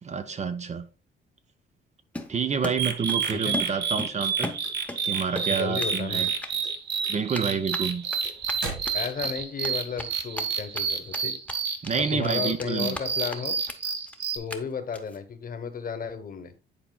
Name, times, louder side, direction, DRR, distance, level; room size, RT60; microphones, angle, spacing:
voice 1, 0.0-0.9 2.3-4.5 5.0-6.3 7.1-8.0 11.8-13.0, right 6 dB, 35° right, 0.6 m, -28 dB
Run, 2.1-3.3 3.5-5.0 5.4-6.0 6.3-6.5 7.3-10.8 11.1-11.2 11.5-12.0 12.2-13.0 13.3-13.4 13.7-13.8 14.1-14.2 14.5-14.6 14.9-15.2, left 2 dB, 5° left, 0.8 m, -36 dB
sound 1, 2.8-14.4, right 6 dB, 60° right, 0.9 m, -30 dB
sound 2, 4.2-5.5 5.8-6.3 6.6-9.4, right 3 dB, 75° right, 2.3 m, -39 dB
voice 2, 5.5-6.3 8.9-11.4 11.9-13.6 14.3-16.5, left 6 dB, 45° left, 1.0 m, -33 dB
9.7 x 4.3 x 2.3 m
cardioid pair, 90°, 20 cm